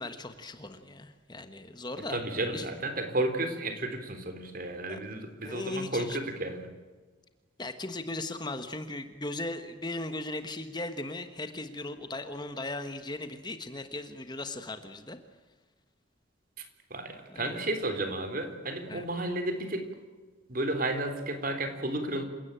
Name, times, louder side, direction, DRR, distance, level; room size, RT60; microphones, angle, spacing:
voice 1, 0.0-2.2 2.5-2.7 4.9-5.0 5.4-6.2 7.6-15.2 17.3-17.6 18.9-19.0, left 2 dB, 20° left, 8 dB, 1.3 m, -38 dB
voice 2, 2.1-6.7 16.6-16.7 16.9-19.9 20.5-22.2, right 1 dB, 45° right, 8 dB, 3.6 m, -32 dB
28.0 x 17.0 x 9.1 m, 1.3 s
head